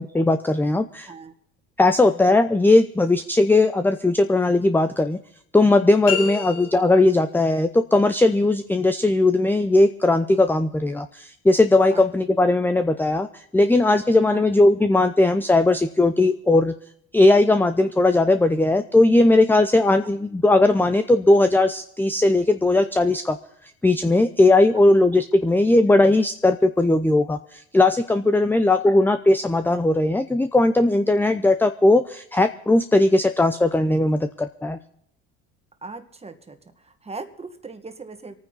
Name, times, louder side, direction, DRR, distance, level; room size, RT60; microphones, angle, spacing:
voice 1, 0.0-1.1 1.8-5.2 5.5-16.7 17.1-23.4 23.8-34.8, left 2 dB, 5° left, 10 dB, 0.6 m, -18 dB
sound 1, 6.0-7.2, left 8 dB, 85° left, 4.2 m, -29 dB
voice 2, 35.8-38.4, right 4 dB, 20° right, 8 dB, 1.8 m, -39 dB
26.5 x 9.4 x 4.1 m, 0.70 s
supercardioid pair, 95°, 33 cm